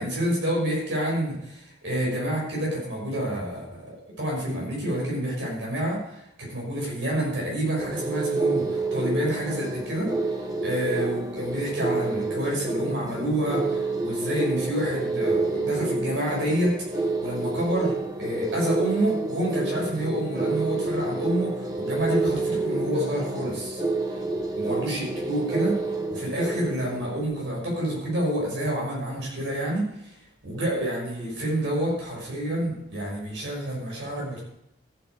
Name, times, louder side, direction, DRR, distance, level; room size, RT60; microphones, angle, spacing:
voice 1, 0.0-3.6 4.2-10.1 10.6-23.8 24.6-25.7 26.1-30.1 30.4-34.4, right 1 dB, 80° right, -2 dB, 6.0 m, -28 dB
sound 1, 7.8-27.2, right 3 dB, 20° right, 1.0 m, -28 dB
14.0 x 8.3 x 4.9 m, 0.80 s
head